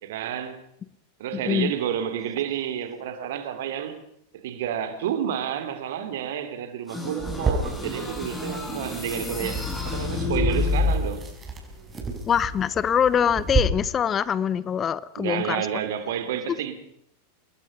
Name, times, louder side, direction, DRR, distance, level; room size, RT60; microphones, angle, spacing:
voice 1, 0.0-0.6 1.2-4.0 4.3-11.2 15.2-16.7, right 9 dB, 55° right, 3.0 m, -30 dB
sound 1, 6.9-11.2, left 2 dB, 10° left, 7.0 m, -28 dB
sound 2, 7.2-13.6, right 4 dB, 15° right, 6.0 m, -32 dB
voice 2, 12.3-15.7, left 8 dB, 25° left, 0.7 m, -24 dB
26.5 x 20.5 x 5.4 m
figure-of-eight pair, 90°, 0 cm